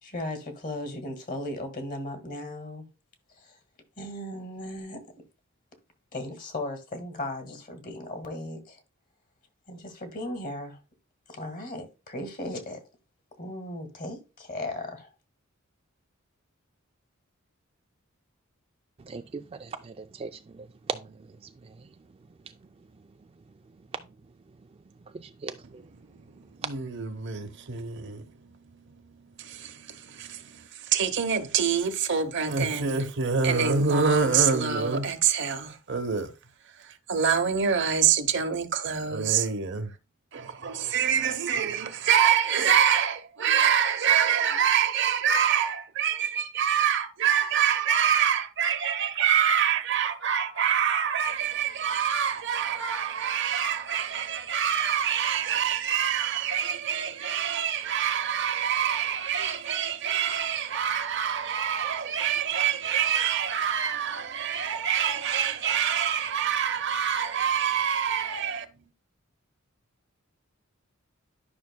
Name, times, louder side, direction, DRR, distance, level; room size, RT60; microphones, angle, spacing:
voice 1, 0.0-2.9 3.4-3.6 4.0-5.0 6.1-8.8 9.7-10.8 11.3-12.8 13.4-15.1, left 1 dB, 40° left, 1.8 m, -36 dB
voice 2, 19.1-20.3 20.6-21.0 25.4-25.5, right 4 dB, 30° right, 0.3 m, -37 dB
voice 3, 26.1-36.3 36.8-39.9 40.3-68.7, right 7 dB, 60° right, 0.9 m, -26 dB
11.5 x 5.8 x 2.2 m
head